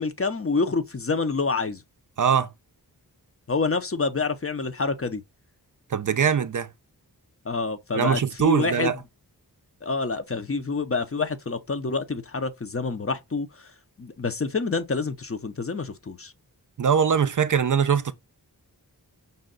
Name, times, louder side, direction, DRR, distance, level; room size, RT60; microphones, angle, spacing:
voice 1, 0.0-1.8 3.5-5.2 7.5-9.0 9.8-13.7 14.0-16.3, left 4 dB, 35° left, 0.6 m, -27 dB
voice 2, 2.2-2.5 5.9-6.7 7.9-9.0 16.8-18.1, right 7 dB, 50° right, 0.4 m, -22 dB
5.4 x 2.3 x 3.7 m
wide cardioid pair, 70°, 39 cm